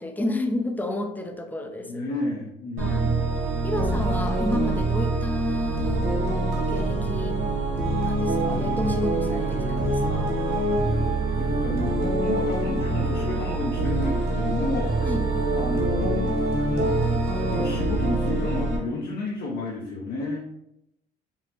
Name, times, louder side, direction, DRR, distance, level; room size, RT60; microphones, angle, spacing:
voice 1, 0.0-2.0 2.8-3.1 3.6-7.4 8.0-10.4 15.0-15.3, left 1 dB, 10° left, 4 dB, 0.5 m, -31 dB
voice 2, 1.9-3.2 11.4-15.1 15.5-16.3 16.7-17.0 17.5-20.5, left 2 dB, 60° left, -3 dB, 0.7 m, -31 dB
sound 1, 2.8-18.8, right 2 dB, 75° right, 1.1 m, -25 dB
5.4 x 2.0 x 2.9 m, 0.84 s
cardioid pair, 110°, 17 cm